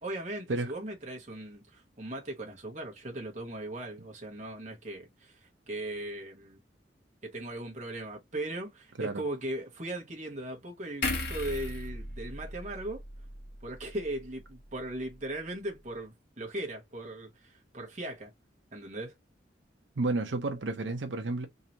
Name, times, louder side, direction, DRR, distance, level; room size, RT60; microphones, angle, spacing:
voice 1, 0.0-5.4 5.7-6.6 7.2-13.0 13.6-18.3 18.7-19.1, right 1 dB, 40° right, 1.3 m, -38 dB
sound 1, 11.0-14.4 14.7-14.9, left 2 dB, 60° left, 1.7 m, -37 dB
voice 2, 20.0-21.5, right 2 dB, 80° right, 0.8 m, -31 dB
3.9 x 2.8 x 2.9 m
head